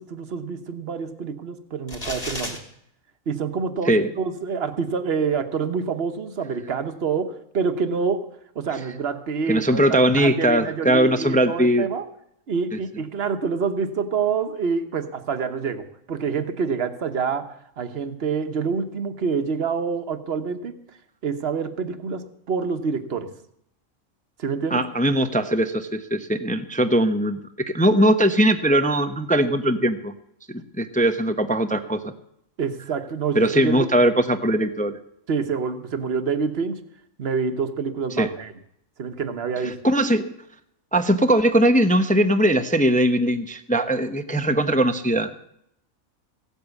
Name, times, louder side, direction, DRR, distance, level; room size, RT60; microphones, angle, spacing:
voice 1, 0.0-2.6 3.3-8.3 8.5-12.1 12.5-20.7 21.2-23.3 24.4-24.9 32.6-33.9 35.3-36.8 37.2-38.5 39.0-39.8, right 5 dB, 50° right, 9 dB, 1.3 m, -27 dB
sound 1, 1.9-2.6, left 1 dB, 25° left, 2.8 m, -32 dB
voice 2, 9.5-11.9 24.7-27.4 27.7-30.1 30.5-32.1 33.3-35.0 38.2-38.3 39.8-40.3 40.9-45.3, right 1 dB, 10° left, 8 dB, 0.5 m, -20 dB
16.0 x 8.5 x 8.2 m, 0.76 s
omnidirectional pair, 1.4 m